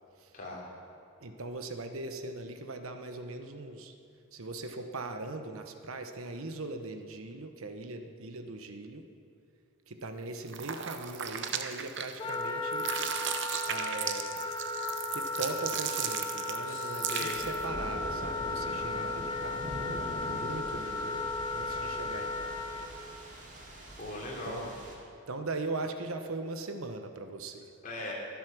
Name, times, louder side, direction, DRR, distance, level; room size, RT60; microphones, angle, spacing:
voice 1, 0.3-0.7 16.6-17.4 18.8-19.1 24.0-24.7 27.8-28.1, left 1 dB, 40° left, -4 dB, 3.6 m, -40 dB
voice 2, 1.2-3.9 4.3-9.1 9.9-12.9 13.7-14.3 15.1-19.6 20.2-22.6 24.4-24.7 25.3-27.7, right 2 dB, 75° right, 6 dB, 1.1 m, -40 dB
sound 1, 10.5-12.4 12.7-17.7, right 9 dB, 55° right, 0.8 m, -36 dB
Wind instrument woodwind instrument, 12.2-22.9, left 3 dB, 20° left, 0.9 m, -35 dB
sound 2, 17.3-25.0, equal, 35° right, 2.3 m, -43 dB
22.5 x 8.5 x 6.2 m, 2.5 s
head